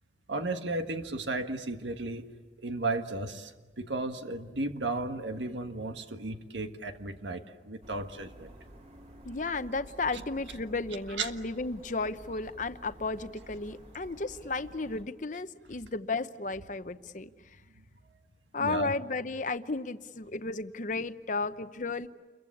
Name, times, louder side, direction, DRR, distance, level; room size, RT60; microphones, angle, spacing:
voice 1, 0.3-2.3 2.6-8.5 10.1-10.2 11.2-11.3 18.6-18.9, right 2 dB, 85° right, 7 dB, 1.6 m, -34 dB
sound 1, 7.8-15.0, equal, 35° right, 2.7 m, -51 dB
voice 2, 9.2-17.3 18.5-22.1, left 3 dB, 45° left, 12 dB, 0.8 m, -34 dB
29.0 x 22.5 x 8.6 m, 1.4 s
head